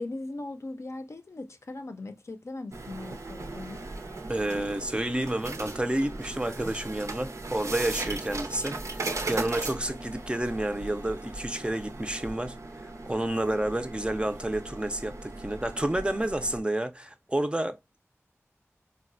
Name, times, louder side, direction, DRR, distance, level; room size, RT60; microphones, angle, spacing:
voice 1, 0.0-3.9, left 2 dB, 70° left, 0.5 m, -39 dB
sound 1, 2.7-16.6, right 2 dB, 80° right, 0.5 m, -38 dB
voice 2, 4.3-12.6 12.8-18.0, right 1 dB, 20° right, 0.4 m, -30 dB
3.8 x 2.1 x 2.5 m
wide cardioid pair, 55°, 5 cm